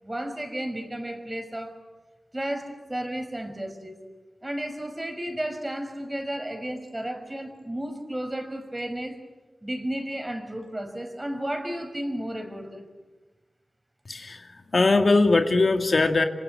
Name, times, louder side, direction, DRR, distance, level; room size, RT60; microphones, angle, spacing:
voice 1, 0.0-1.8 2.3-4.0 4.4-9.2 9.6-12.9, right 1 dB, 20° right, 7 dB, 5.6 m, -33 dB
voice 2, 14.1-16.2, left 3 dB, 60° left, 5 dB, 2.3 m, -21 dB
26.5 x 26.5 x 8.5 m, 1.2 s
wide cardioid pair, 60°, 0 cm